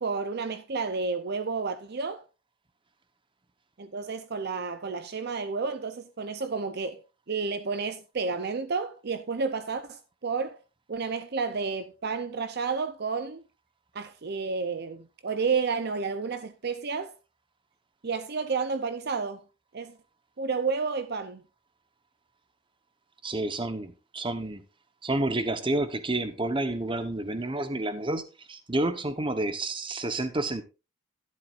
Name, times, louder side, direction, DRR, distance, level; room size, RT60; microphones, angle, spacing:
voice 1, 0.0-2.2 3.8-7.0 7.3-10.6 10.9-13.4 13.9-17.1 18.0-19.4 19.7-20.0 20.4-21.4, right 4 dB, 55° right, 0.7 m, -31 dB
voice 2, 23.2-24.6 25.0-30.6, right 2 dB, 25° right, 1.0 m, -30 dB
12.0 x 11.0 x 2.5 m
head